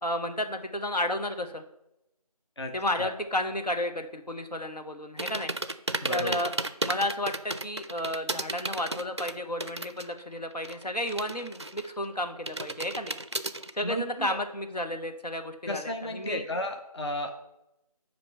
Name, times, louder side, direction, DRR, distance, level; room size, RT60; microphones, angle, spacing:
voice 1, 0.0-1.6 2.7-5.5 6.1-6.5 6.8-13.2 13.7-16.5, left 1 dB, 85° left, 6 dB, 1.0 m, -32 dB
sound 1, 5.2-10.2 10.5-12.1 12.5-13.7, right 2 dB, 45° right, 0.4 m, -33 dB
voice 2, 6.0-6.4 13.8-14.4 15.7-17.4, left 1 dB, 45° left, 4 dB, 0.6 m, -33 dB
8.5 x 3.0 x 6.4 m, 0.87 s
figure-of-eight pair, 165°, 20 cm